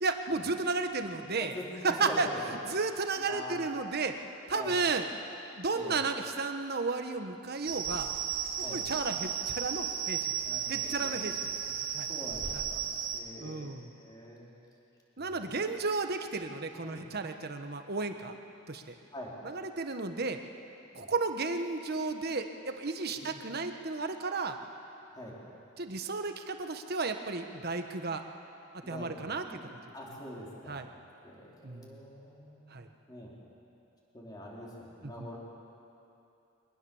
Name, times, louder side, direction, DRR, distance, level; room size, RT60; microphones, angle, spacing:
voice 1, 0.0-1.5 1.8-2.3 2.6-4.2 4.5-5.0 5.6-8.1 8.7-10.3 10.7-11.4 11.9-12.1 12.5-12.6 13.4-13.9 15.2-18.4 18.7-18.9 19.4-20.4 20.9-24.6 25.8-28.2 28.9-29.4 30.7-30.9 31.6-32.0 32.7-32.9 35.2-35.3, right 3 dB, 50° right, 6 dB, 1.3 m, -33 dB
voice 2, 1.4-2.4 3.3-3.6 4.5-4.8 5.7-6.0 8.6-8.8 10.4-11.2 12.1-12.8 13.1-13.7 14.0-14.5 15.2-15.6 16.8-17.1 19.1-19.3 20.9-21.1 23.1-23.3 25.1-25.3 28.8-29.6 29.9-30.8 31.2-32.7 33.1-33.4 34.1-35.4, equal, 20° left, -4 dB, 4.2 m, -44 dB
sound 1, 7.6-13.2, right 8 dB, 70° right, 2.0 m, -34 dB
23.5 x 20.0 x 7.2 m, 2.8 s
head